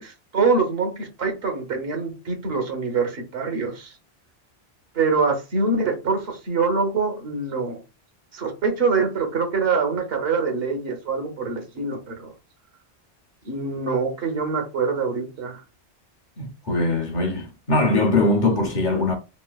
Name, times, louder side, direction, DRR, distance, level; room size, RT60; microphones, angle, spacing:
voice 1, 0.0-3.9 4.9-7.8 8.3-12.3 13.4-15.6, right 4 dB, 65° right, 1.0 m, -24 dB
voice 2, 16.4-19.2, left 2 dB, 55° left, 0.6 m, -21 dB
3.2 x 2.5 x 2.2 m
omnidirectional pair, 1.1 m